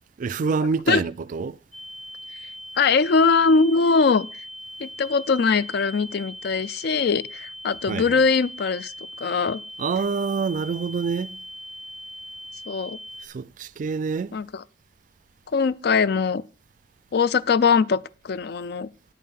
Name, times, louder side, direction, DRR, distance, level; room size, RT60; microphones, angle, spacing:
voice 1, 0.2-1.6 7.9-8.2 9.8-11.3 13.2-14.4, right 5 dB, 45° right, 0.3 m, -26 dB
sound 1, 1.7-13.3, equal, 45° left, 1.6 m, -40 dB
voice 2, 2.8-4.3 4.8-8.9 9.2-9.6 12.7-13.0 14.3-14.6 15.5-16.4 17.1-18.9, left 5 dB, 60° left, 0.4 m, -21 dB
8.4 x 5.6 x 7.1 m
head